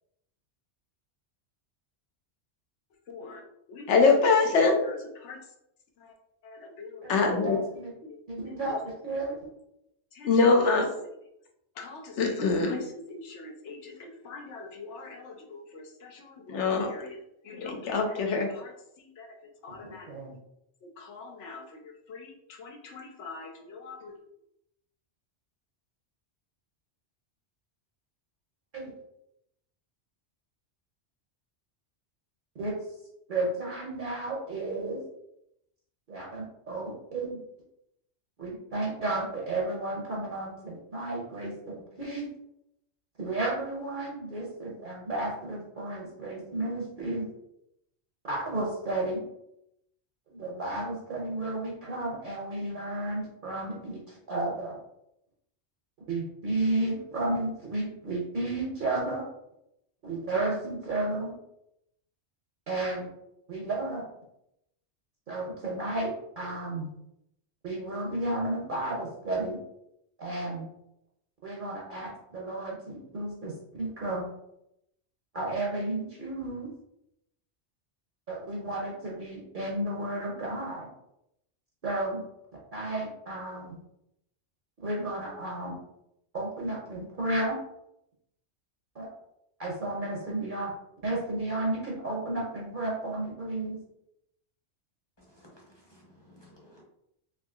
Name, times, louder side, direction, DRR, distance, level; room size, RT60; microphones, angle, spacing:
voice 1, 3.1-3.4 3.7-5.4 6.4-7.6 8.0-8.2 10.2-11.1 11.8-17.2 17.5-18.7 19.2-19.3 19.6-20.1 21.0-21.6 22.1-24.1, left 4 dB, 80° left, 3 dB, 1.0 m, -28 dB
voice 2, 7.0-7.9 8.3-9.4 19.7-20.3 28.7-28.9 32.6-32.8 33.3-35.0 36.1-37.4 38.4-42.3 43.2-47.3 48.2-49.2 50.3-54.8 56.1-59.3 60.0-61.3 62.7-63.1 63.5-64.0 65.3-66.9 67.6-69.6 70.2-70.7 71.4-73.5 73.8-74.3 75.3-76.7 78.3-80.9 81.8-82.2 82.7-83.8 84.8-85.8 86.3-87.6 88.9-89.1 89.6-90.7 91.0-93.8, right 2 dB, 55° right, -3 dB, 0.8 m, -32 dB
voice 3, 95.2-96.8, left 1 dB, 25° left, -3 dB, 0.7 m, -57 dB
3.5 x 2.7 x 2.3 m, 0.81 s
omnidirectional pair, 1.2 m